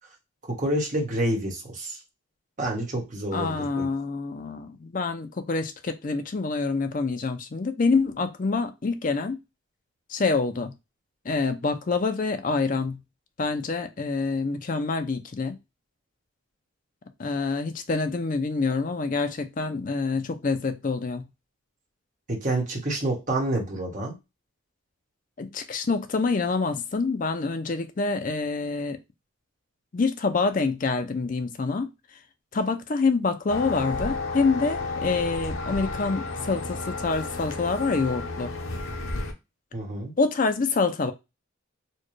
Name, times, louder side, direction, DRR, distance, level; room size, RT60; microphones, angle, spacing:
voice 1, 0.5-2.0 2.6-3.9 22.3-24.2 39.7-40.1, right 1 dB, 40° right, 1.2 m, -28 dB
voice 2, 3.3-9.4 10.1-10.7 11.2-13.0 13.4-15.6 17.2-21.3 25.4-29.0 29.9-31.9 32.5-38.5 40.2-41.1, left 4 dB, 40° left, 0.5 m, -26 dB
sound 1, 33.5-39.3, left 3 dB, 75° left, 0.7 m, -32 dB
4.3 x 2.2 x 3.1 m
head